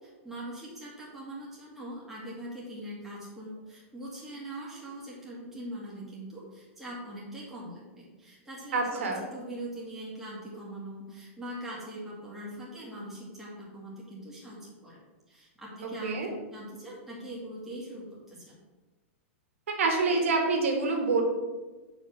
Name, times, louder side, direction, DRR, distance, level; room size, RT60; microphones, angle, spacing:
voice 1, 0.0-16.2 16.5-18.6, right 1 dB, 5° right, -6 dB, 2.1 m, -42 dB
voice 2, 8.7-9.2 16.0-16.3 19.8-21.2, right 3 dB, 85° right, 2 dB, 2.0 m, -26 dB
6.6 x 5.0 x 6.3 m, 1.2 s
supercardioid pair, 160°, 7 cm